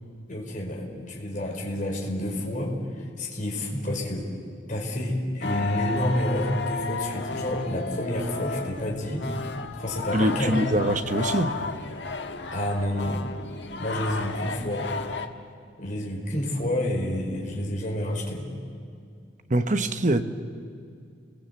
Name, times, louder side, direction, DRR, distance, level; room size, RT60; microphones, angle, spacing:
voice 1, 0.3-4.3 4.7-9.3 9.8-10.6 12.5-13.2 13.8-14.9 15.8-18.5, left 1 dB, 45° left, -1 dB, 5.1 m, -29 dB
sound 1, 5.4-15.3, left 4 dB, 70° left, 1.5 m, -33 dB
voice 2, 10.1-11.5 19.5-20.2, right 1 dB, 40° right, 8 dB, 1.2 m, -23 dB
30.0 x 21.0 x 8.3 m, 2.3 s
head